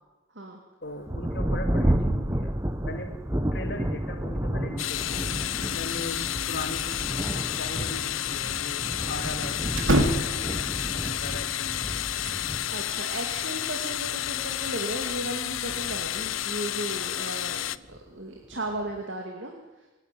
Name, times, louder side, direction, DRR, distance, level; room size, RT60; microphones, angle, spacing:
voice 1, 0.8-3.2 3.5-5.2 5.7-12.0 14.0-14.1, left 1 dB, 55° left, 5 dB, 2.7 m, -39 dB
Thunder, 1.1-17.1 17.9-18.0 18.5-19.0, right 1 dB, 15° right, 1.0 m, -31 dB
sound 1, 4.8-17.8, left 12 dB, 85° left, 0.6 m, -31 dB
sound 2, 6.8-7.4 7.7-7.8 9.7-10.6 12.1-13.1, right 1 dB, 85° right, 2.8 m, -27 dB
voice 2, 12.7-19.5, right 1 dB, 60° right, 2 dB, 2.6 m, -35 dB
27.5 x 11.0 x 9.5 m, 1.1 s
head